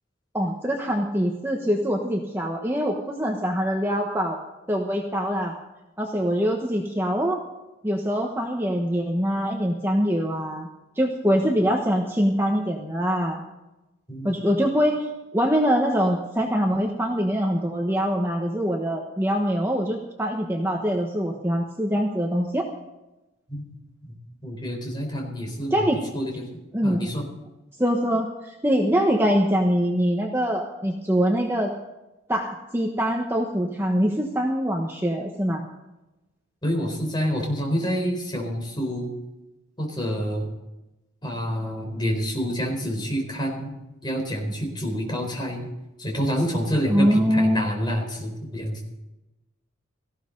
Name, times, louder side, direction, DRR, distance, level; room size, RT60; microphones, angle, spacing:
voice 1, 0.3-4.4 4.7-5.5 6.0-7.4 7.8-10.7 11.0-13.4 14.2-22.6 25.7-26.0 26.7-27.1 27.8-31.7 32.3-35.7 46.9-47.7, equal, 10° right, 1 dB, 1.2 m, -24 dB
voice 2, 24.4-25.8 26.1-26.5 26.8-27.2 36.6-39.1 39.8-40.5 41.2-43.7 44.0-45.6 46.0-48.8, equal, 20° left, 1 dB, 4.3 m, -27 dB
18.0 x 15.5 x 4.0 m, 0.99 s
head